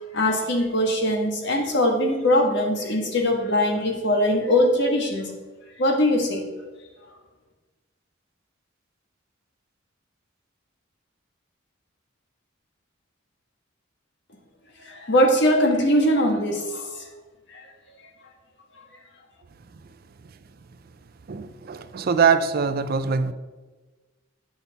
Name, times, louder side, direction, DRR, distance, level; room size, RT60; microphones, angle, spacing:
voice 1, 0.1-5.3 5.8-6.4 14.8-17.0 17.5-17.7, left 1 dB, 60° left, 2 dB, 1.4 m, -21 dB
voice 2, 21.3-23.3, right 6 dB, 50° right, 11 dB, 0.4 m, -22 dB
9.0 x 5.6 x 4.0 m, 1.2 s
head